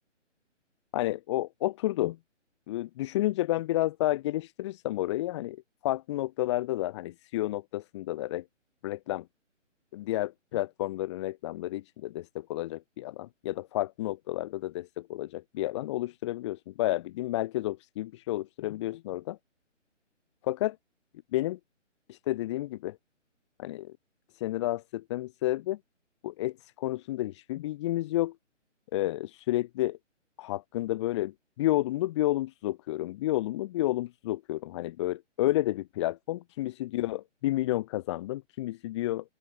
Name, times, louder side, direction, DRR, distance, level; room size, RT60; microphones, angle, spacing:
voice 1, 0.9-2.2 2.7-8.4 8.8-9.3 9.9-19.4 20.4-20.8 21.3-21.6 22.1-23.0 23.6-24.0 24.4-25.8 26.2-28.3 28.9-30.0 30.4-39.4, left 16 dB, 25° left, 3.2 m, -31 dB
open air
figure-of-eight pair, 155°, 37 cm